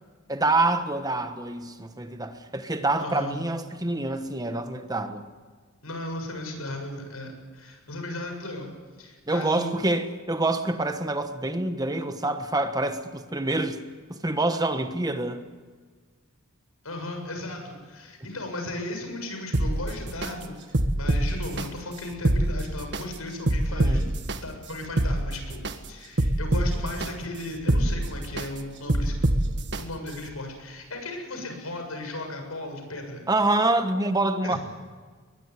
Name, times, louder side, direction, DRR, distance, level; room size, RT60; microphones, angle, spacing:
voice 1, 0.3-5.3 9.3-13.8 14.1-15.4 23.7-24.0 33.3-34.6, right 2 dB, 20° right, 1.3 m, -26 dB
voice 2, 3.0-3.4 5.8-8.7 9.0-9.7 16.8-24.0 24.4-25.6 25.9-29.2 29.8-33.2 34.4-34.6, left 1 dB, 85° left, 7.3 m, -36 dB
sound 1, 19.5-20.3 20.7-21.7 22.1-23.0 23.5-24.4 24.8-25.7 26.2-27.1 27.5-28.5 28.9-29.8 30.3-30.4, right 1 dB, 55° right, 1.6 m, -24 dB
22.0 x 21.0 x 9.8 m
head